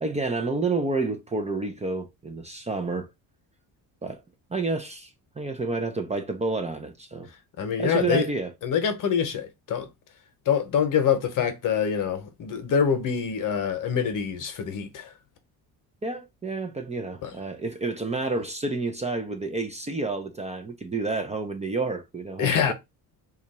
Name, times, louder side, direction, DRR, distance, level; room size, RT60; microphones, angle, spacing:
voice 1, 0.0-3.1 4.0-4.2 4.5-5.1 5.4-7.3 7.8-8.5 16.0-22.7, right 3 dB, 20° right, 0.5 m, -29 dB
voice 2, 7.6-8.3 8.6-9.9 10.5-15.1 17.2-17.3 22.4-22.7, left 7 dB, 55° left, 0.9 m, -25 dB
2.8 x 2.4 x 4.1 m
cardioid pair, 120°, 38 cm